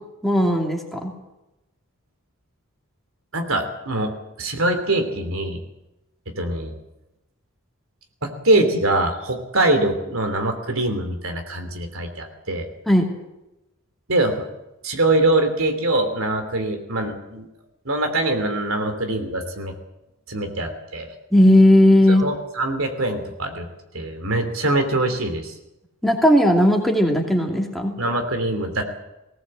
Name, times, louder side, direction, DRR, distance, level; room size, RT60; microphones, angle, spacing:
voice 1, 0.2-1.1 12.9-13.1 21.3-22.3 26.0-28.0, left 1 dB, ahead, 0 dB, 2.6 m, -16 dB
voice 2, 3.3-5.6 6.3-6.7 8.2-12.7 14.1-14.5 14.8-17.5 17.8-19.7 20.3-21.1 22.2-23.7 23.9-25.5 28.0-28.8, right 2 dB, 75° right, 6 dB, 3.1 m, -23 dB
19.5 x 17.5 x 7.7 m, 0.95 s
head